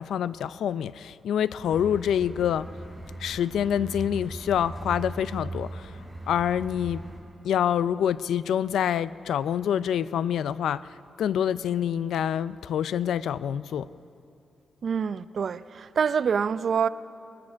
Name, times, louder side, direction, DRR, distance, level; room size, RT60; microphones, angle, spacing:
voice 1, 0.0-2.7 3.2-5.9 6.3-7.1 7.4-13.9, left 9 dB, 90° left, 0.4 m, -26 dB
sound 1, 1.6-7.2, right 2 dB, 5° right, 6.4 m, -39 dB
voice 2, 14.8-16.9, right 6 dB, 60° right, 0.5 m, -26 dB
21.5 x 20.0 x 6.3 m
cardioid pair, 95°, 0 cm